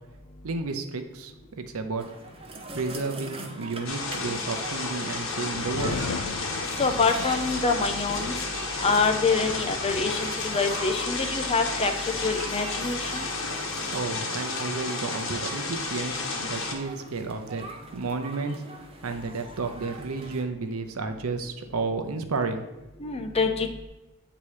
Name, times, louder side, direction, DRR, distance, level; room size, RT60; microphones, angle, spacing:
voice 1, 0.4-2.0 2.7-6.0 13.9-22.7, right 3 dB, 80° right, 7 dB, 0.6 m, -32 dB
sound 1, 2.0-20.4, right 2 dB, 25° right, 0.6 m, -42 dB
sound 2, 3.9-16.7, left 3 dB, 65° left, 1.0 m, -32 dB
sound 3, 5.5-10.9, left 5 dB, 85° left, 0.4 m, -38 dB
voice 2, 6.8-8.3 8.8-11.9 12.2-13.2 23.0-23.7, left 4 dB, 30° left, 6 dB, 0.5 m, -25 dB
8.2 x 2.9 x 4.8 m, 1.0 s
head